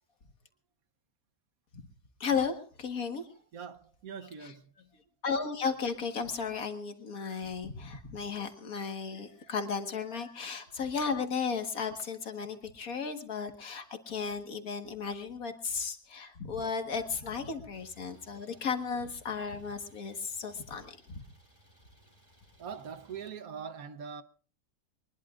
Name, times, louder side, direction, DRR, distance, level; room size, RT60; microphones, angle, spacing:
voice 1, 2.2-3.3 5.2-21.2, left 5 dB, 65° left, 2.0 m, -34 dB
voice 2, 3.5-5.0 9.4-9.5 14.0-14.1 16.9-17.0 18.0-18.6 22.6-24.2, right 6 dB, 70° right, 1.4 m, -44 dB
Idling, 17.7-23.3, equal, 25° left, 8.0 m, -62 dB
23.5 x 20.5 x 2.5 m
omnidirectional pair, 1.6 m